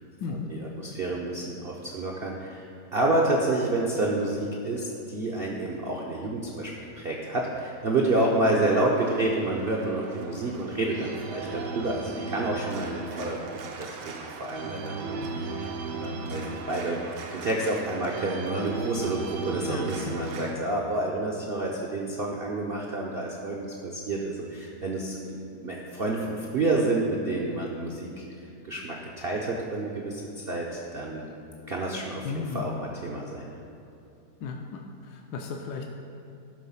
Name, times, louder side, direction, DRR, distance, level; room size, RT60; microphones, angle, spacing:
voice 1, 0.5-28.2 28.7-31.2 31.7-33.6, right 2 dB, 60° right, -2 dB, 0.6 m, -29 dB
Organ, 7.5-20.5, right 3 dB, 80° right, 1.4 m, -37 dB
voice 2, 19.6-20.2 32.2-32.7 34.4-35.9, left 5 dB, 75° left, 2 dB, 1.1 m, -35 dB
11.0 x 3.9 x 5.6 m, 2.7 s
omnidirectional pair, 1.8 m